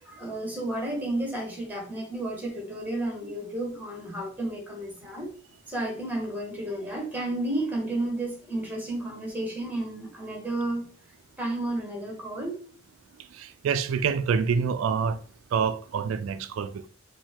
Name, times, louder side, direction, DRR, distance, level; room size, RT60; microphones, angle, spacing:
voice 1, 0.0-5.3 5.7-10.8 11.4-12.6, right 1 dB, 10° right, 1.3 m, -32 dB
voice 2, 13.4-15.2 15.5-16.9, right 6 dB, 85° right, 0.3 m, -26 dB
4.4 x 2.7 x 4.4 m
head